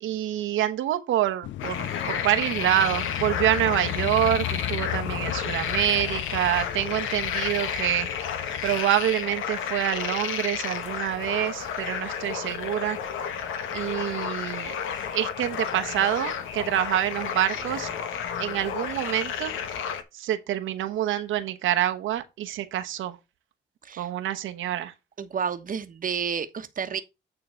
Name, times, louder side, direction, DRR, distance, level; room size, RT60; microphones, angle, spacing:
voice 1, 0.0-8.1 8.6-13.0 13.7-14.8 15.1-17.9 18.4-19.5 20.1-23.2 24.0-24.9, right 12 dB, 80° right, 1.0 m, -26 dB
sound 1, 1.4-8.8, left 14 dB, 70° left, 0.5 m, -35 dB
sound 2, 1.6-20.0, left 8 dB, 85° left, 1.2 m, -32 dB
voice 2, 25.2-27.0, right 7 dB, 45° right, 1.1 m, -30 dB
9.0 x 3.8 x 5.6 m
cardioid pair, 90°, 20 cm